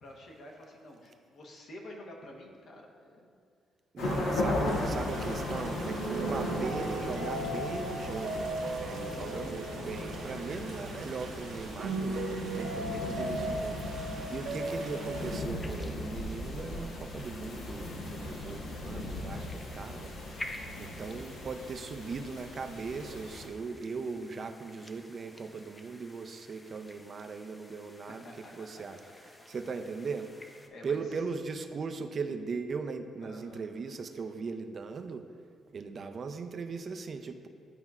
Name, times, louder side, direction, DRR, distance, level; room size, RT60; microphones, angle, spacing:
voice 1, 0.0-3.3 4.0-4.5 4.8-5.3 9.1-9.6 19.3-19.5 28.2-28.8 30.7-31.0 33.2-33.6, left 1 dB, 65° left, 0 dB, 1.0 m, -49 dB
voice 2, 3.9-20.1 20.8-28.2 28.6-29.0 29.5-30.3 30.8-35.2 35.7-37.5, right 4 dB, 45° right, 7 dB, 0.4 m, -39 dB
sound 1, 4.0-23.5, left 2 dB, 85° left, 0.9 m, -37 dB
sound 2, 4.7-15.4, right 2 dB, 85° right, 1.0 m, -37 dB
sound 3, 15.1-30.7, left 1 dB, 20° left, 0.5 m, -51 dB
10.5 x 4.2 x 2.4 m, 2.2 s
cardioid pair, 90°, 0 cm